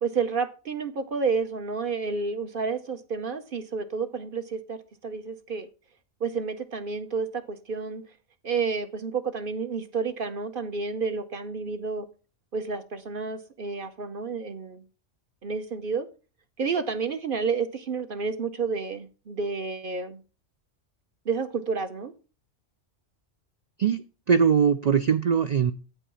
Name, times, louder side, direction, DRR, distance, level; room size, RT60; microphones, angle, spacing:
voice 1, 0.0-4.8 5.0-5.7 6.2-8.0 8.4-12.0 12.5-14.8 15.4-16.1 16.6-20.2 21.3-22.1, right 5 dB, 50° right, 0.9 m, -30 dB
voice 2, 23.8-25.7, right 7 dB, 90° right, 0.3 m, -22 dB
8.4 x 5.4 x 5.6 m
omnidirectional pair, 1.3 m